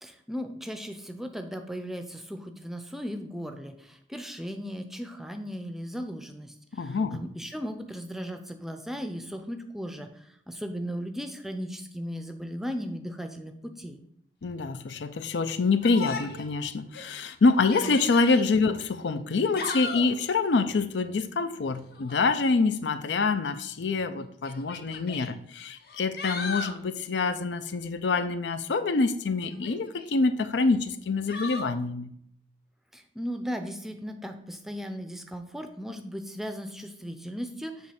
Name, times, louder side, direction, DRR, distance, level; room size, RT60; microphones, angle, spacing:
voice 1, 0.0-14.0 32.9-37.9, equal, ahead, 6 dB, 0.5 m, -37 dB
voice 2, 6.7-7.2 14.4-32.1, left 4 dB, 80° left, 11 dB, 0.5 m, -26 dB
Yell, 15.8-16.5 16.9-17.0 17.6-18.5 19.3-20.2 21.9-22.3 23.5-23.6 24.5-25.3 25.8-26.8 29.4-30.1 31.3-31.7, left 4 dB, 55° left, 0.8 m, -37 dB
7.5 x 3.2 x 5.8 m, 0.68 s
head